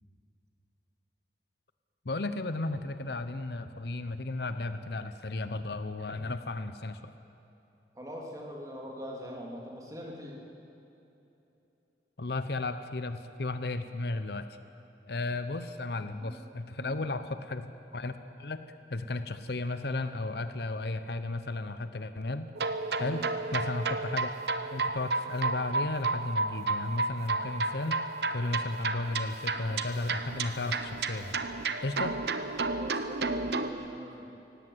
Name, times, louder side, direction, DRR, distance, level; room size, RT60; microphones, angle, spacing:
voice 1, 2.0-7.0 12.2-14.5 15.1-18.6 18.9-22.5 23.0-23.2 23.5-24.3 24.6-28.0 28.3-31.3 31.8-32.2, left 2 dB, 65° left, 11 dB, 0.8 m, -34 dB
voice 2, 7.9-10.4 16.2-16.4 16.8-17.0 23.0-23.2 32.7-34.2, equal, 20° right, -1 dB, 2.9 m, -42 dB
sound 1, 22.6-33.7, right 3 dB, 65° right, 1.0 m, -32 dB
17.5 x 16.5 x 9.6 m, 3.0 s
head